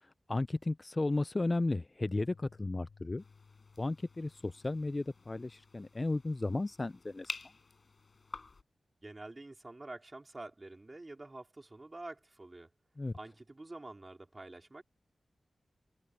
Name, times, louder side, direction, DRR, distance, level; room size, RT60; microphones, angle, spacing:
voice 1, 0.0-3.2 3.8-7.3 13.0-13.1, left 2 dB, 25° left, 0.3 m, -34 dB
sound 1, 2.2-8.5, left 5 dB, 65° left, 6.6 m, -63 dB
sound 2, 3.2-8.6, left 4 dB, 45° left, 5.4 m, -49 dB
voice 2, 9.0-12.7 13.1-14.8, right 2 dB, 25° right, 4.3 m, -48 dB
wide cardioid pair, 110°, 0 cm